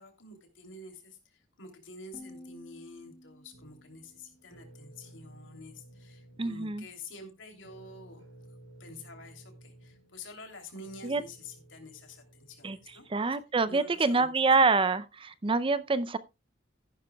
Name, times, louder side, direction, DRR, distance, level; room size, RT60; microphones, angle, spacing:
voice 1, 0.0-8.3 8.8-13.4 13.7-14.3, left 2 dB, 75° left, 3.1 m, -48 dB
sound 1, 2.1-5.1, left 1 dB, 20° left, 2.1 m, -53 dB
sound 2, 3.5-13.4, right 1 dB, 90° right, 4.2 m, -55 dB
voice 2, 6.4-6.8 11.0-11.2 12.6-12.8 13.1-16.2, right 4 dB, 25° right, 0.5 m, -26 dB
14.5 x 11.0 x 2.3 m
head